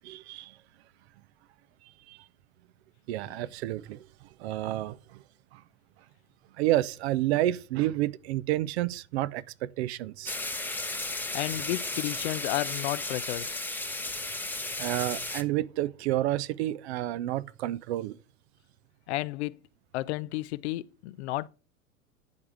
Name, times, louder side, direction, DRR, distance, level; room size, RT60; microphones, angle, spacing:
voice 1, 0.0-0.5 2.1-2.2 3.1-4.1 4.4-5.2 5.5-5.6 6.6-10.4 14.8-18.2, right 15 dB, 55° right, 0.7 m, -30 dB
sound 1, 10.3-15.4, left 2 dB, 5° left, 0.9 m, -34 dB
voice 2, 11.3-13.6 19.1-19.6 19.9-21.5, left 17 dB, 55° left, 0.6 m, -32 dB
10.5 x 4.8 x 6.5 m
figure-of-eight pair, 85°, 41 cm